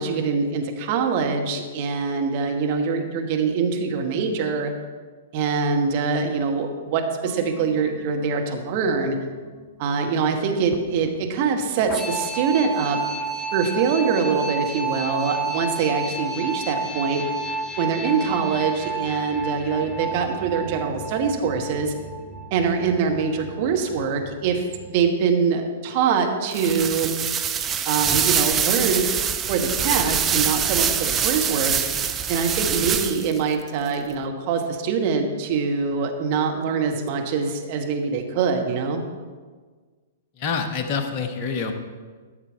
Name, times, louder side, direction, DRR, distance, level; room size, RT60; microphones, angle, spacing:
voice 1, 0.0-4.7 5.3-9.2 9.8-13.0 13.5-17.2 17.8-21.9 22.5-27.1 27.8-29.1 29.5-31.7 32.3-39.0, right 5 dB, 40° right, 3 dB, 1.3 m, -24 dB
sound 1, 7.2-25.1, right 3 dB, 20° left, 0.9 m, -32 dB
sound 2, 26.5-33.4, right 8 dB, 20° right, 0.5 m, -24 dB
voice 2, 40.4-41.7, left 5 dB, 35° left, 5 dB, 1.2 m, -26 dB
12.5 x 6.6 x 4.6 m, 1.5 s
figure-of-eight pair, 110°, 0 cm